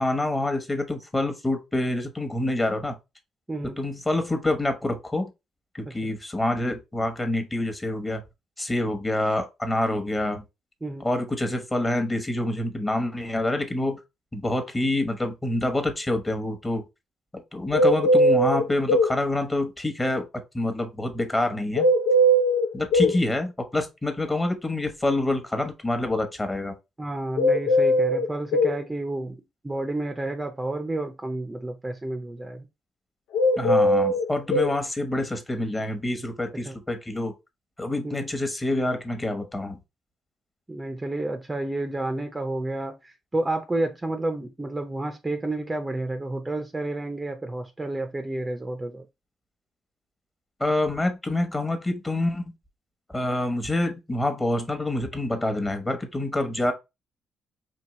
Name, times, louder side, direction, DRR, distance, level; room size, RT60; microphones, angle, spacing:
voice 1, 0.0-3.0 3.8-5.3 5.7-8.2 8.6-10.4 11.0-14.0 14.3-16.8 17.3-20.3 20.5-21.9 22.7-26.7 33.6-37.3 37.8-39.8 50.6-52.6 53.1-56.7, left 1 dB, 15° left, 1.1 m, -27 dB
voice 2, 3.5-3.8 5.8-5.9 10.8-11.1 23.0-23.1 27.0-29.4 29.6-32.7 36.7-36.8 38.0-38.2 40.7-49.1, right 2 dB, 15° right, 0.6 m, -30 dB
sound 1, 17.7-19.1 21.8-23.2 27.4-28.8 33.3-34.7, equal, 85° left, 0.6 m, -20 dB
4.5 x 3.1 x 3.1 m
cardioid pair, 90°, 0 cm